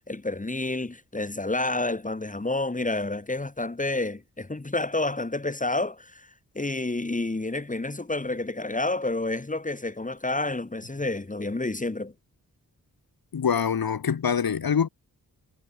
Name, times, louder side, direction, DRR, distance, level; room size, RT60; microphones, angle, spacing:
voice 1, 0.0-6.3 6.5-12.1, left 2 dB, 20° left, 4.9 m, -29 dB
voice 2, 13.3-14.9, left 7 dB, 85° left, 4.1 m, -24 dB
wide cardioid pair, 140°, 35 cm